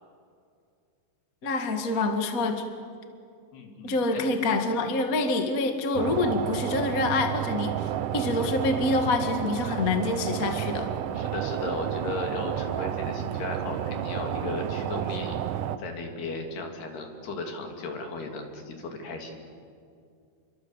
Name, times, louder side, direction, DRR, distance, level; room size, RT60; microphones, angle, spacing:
voice 1, 1.4-2.6 3.8-7.9 8.1-10.9, left 2 dB, 40° left, 5 dB, 1.1 m, -26 dB
voice 2, 3.5-4.2 11.1-15.4 15.8-19.5, left 3 dB, 65° left, 3 dB, 4.8 m, -36 dB
sound 1, 5.9-15.8, right 10 dB, 85° right, 1.8 m, -31 dB
29.0 x 24.0 x 8.3 m, 2.3 s
omnidirectional pair, 5.2 m